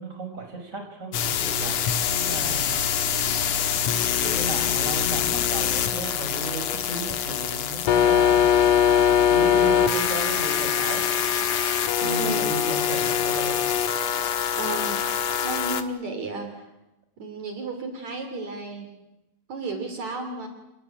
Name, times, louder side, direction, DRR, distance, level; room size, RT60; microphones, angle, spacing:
voice 1, 0.0-1.8 2.1-2.7 4.0-11.0 12.0-13.6, right 3 dB, 25° right, 4 dB, 5.5 m, -34 dB
sound 1, 1.1-15.8, left 9 dB, 85° left, 3.0 m, -23 dB
voice 2, 12.0-12.6 14.6-15.1 15.4-16.7 17.2-18.9 19.5-20.5, right 2 dB, 65° right, 6 dB, 4.3 m, -33 dB
30.0 x 18.5 x 9.9 m, 0.94 s
omnidirectional pair, 3.5 m